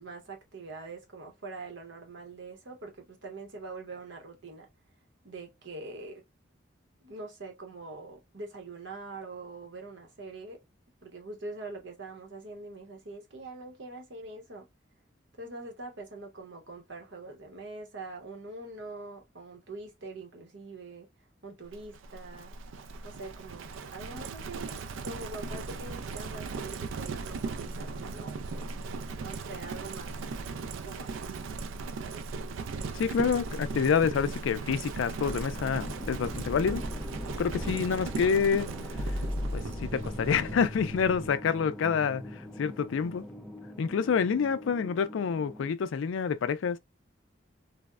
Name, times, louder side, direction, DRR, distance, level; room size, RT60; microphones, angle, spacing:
voice 1, 0.0-4.7 5.2-6.2 7.0-10.6 11.0-14.7 15.4-21.1 21.4-22.5 23.0-28.8 29.2-30.2 30.8-31.5 32.0-32.2, right 3 dB, 70° right, 0.9 m, -44 dB
Livestock farm animals working animals, 21.7-41.4, right 4 dB, 85° right, 0.4 m, -38 dB
voice 2, 32.9-36.8 37.4-38.7 39.5-43.3 43.8-46.8, left 6 dB, 80° left, 0.3 m, -28 dB
sound 1, 35.2-45.7, left 1 dB, ahead, 0.5 m, -39 dB
3.3 x 2.1 x 2.3 m
head